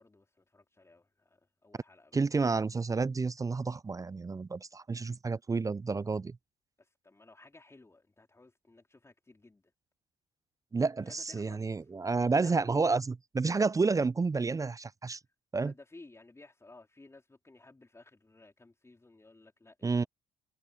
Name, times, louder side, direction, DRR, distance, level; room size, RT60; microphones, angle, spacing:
voice 1, 0.0-2.2 6.8-9.7 11.0-11.9 12.3-12.5 15.2-15.3 15.6-20.1, left 2 dB, 20° left, 4.3 m, -57 dB
voice 2, 2.1-6.4 10.7-15.2 15.5-15.7 19.8-20.0, right 4 dB, 20° right, 0.6 m, -30 dB
hypercardioid pair, 55°, 15 cm